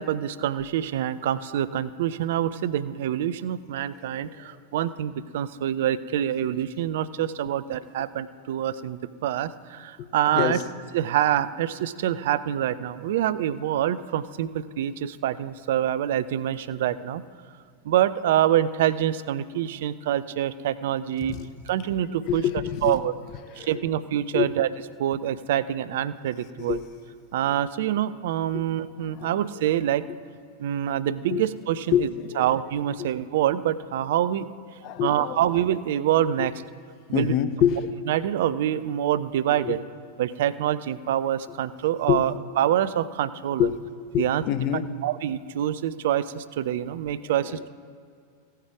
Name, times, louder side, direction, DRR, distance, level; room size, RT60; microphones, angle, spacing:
voice 1, 0.0-10.6 10.9-17.2 17.9-21.3 21.7-22.4 22.8-23.1 23.6-24.7 25.0-26.8 27.3-30.1 30.6-32.1 32.4-34.5 35.0-36.5 37.1-37.3 38.1-39.8 40.2-43.7 44.2-44.4 44.7-47.7, right 11 dB, 55° right, 15 dB, 0.4 m, -26 dB
voice 2, 22.3-23.0 23.6-23.7 24.3-24.5 26.7-26.8 28.5-28.6 29.2-29.3 31.3-31.4 31.9-32.5 33.0-33.1 34.8-35.4 36.4-36.5 37.1-37.9 39.6-39.8 42.1-42.2 43.6-43.8 44.1-45.0 47.2-47.5, left 10 dB, 40° left, 12 dB, 0.7 m, -26 dB
16.0 x 9.0 x 4.8 m, 2.3 s
figure-of-eight pair, 90°, 0 cm